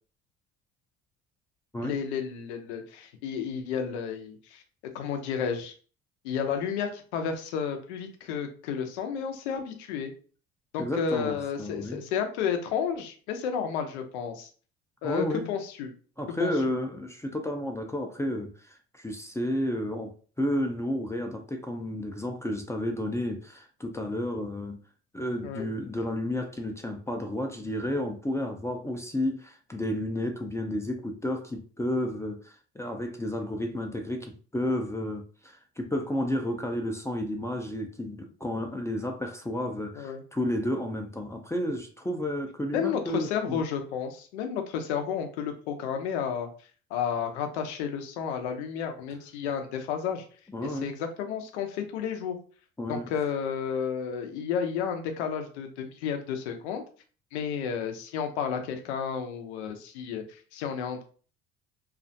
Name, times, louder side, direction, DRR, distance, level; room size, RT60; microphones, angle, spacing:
voice 1, 1.8-4.6 4.9-5.7 6.2-10.1 10.7-14.5 15.0-15.9 16.4-16.5 25.4-25.7 40.0-40.2 42.7-46.5 46.9-50.2 50.6-52.4 52.9-56.8 57.3-61.0, left 7 dB, 85° left, 0.6 m, -32 dB
voice 2, 10.8-12.0 15.0-15.5 16.2-24.8 25.1-43.6 50.5-50.9 52.8-53.1, left 1 dB, 10° left, 0.4 m, -32 dB
2.4 x 2.1 x 2.6 m
hypercardioid pair, 65°, 32 cm